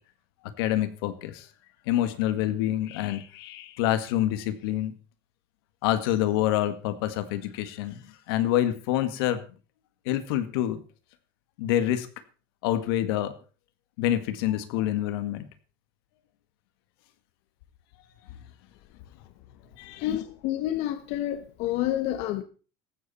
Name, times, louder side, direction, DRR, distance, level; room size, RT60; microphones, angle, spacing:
voice 1, 0.6-1.5 1.9-4.9 5.8-9.4 10.1-10.8 11.6-12.1 12.6-13.3 14.0-15.5 19.8-20.1, left 12 dB, 85° left, 1.9 m, -27 dB
voice 2, 20.0-22.4, left 13 dB, 60° left, 1.2 m, -29 dB
15.0 x 12.5 x 4.3 m
cardioid pair, 140°, 12 cm